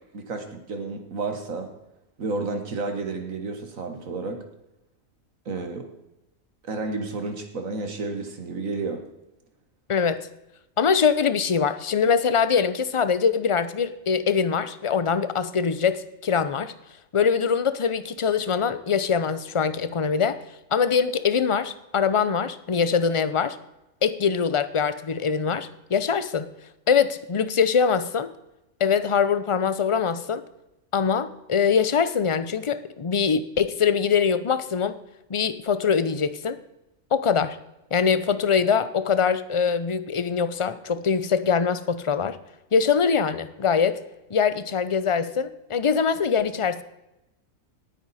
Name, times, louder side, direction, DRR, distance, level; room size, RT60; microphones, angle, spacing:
voice 1, 0.1-1.7 2.2-4.4 5.5-5.9 6.6-9.0, right 3 dB, 75° right, 5 dB, 1.8 m, -31 dB
voice 2, 9.9-10.2 10.8-16.7 17.1-20.4 20.7-23.6 24.0-26.5 26.9-28.3 28.8-30.4 30.9-35.0 35.3-36.6 37.1-37.6 37.9-42.4 42.7-44.0 44.3-46.8, left 6 dB, 40° left, 13 dB, 0.5 m, -23 dB
18.5 x 9.8 x 4.2 m, 0.93 s
omnidirectional pair, 1.4 m